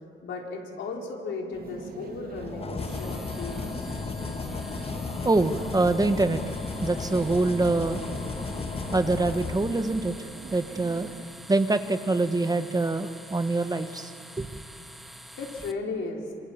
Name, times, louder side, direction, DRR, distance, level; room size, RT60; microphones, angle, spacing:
voice 1, 0.2-3.7 15.4-16.3, left 3 dB, 70° left, 0 dB, 4.5 m, -35 dB
sound 1, 1.5-11.2, right 5 dB, 50° right, 2.3 m, -42 dB
sound 2, 2.4-10.3, left 5 dB, 30° left, 1.2 m, -35 dB
sound 3, 2.8-15.7, equal, ahead, 1.7 m, -47 dB
voice 2, 5.2-8.0 8.3-8.4 8.9-11.1 11.5-14.5, right 2 dB, 20° right, 9 dB, 1.2 m, -25 dB
26.5 x 24.5 x 7.3 m, 2.5 s
cardioid pair, 90°, 20 cm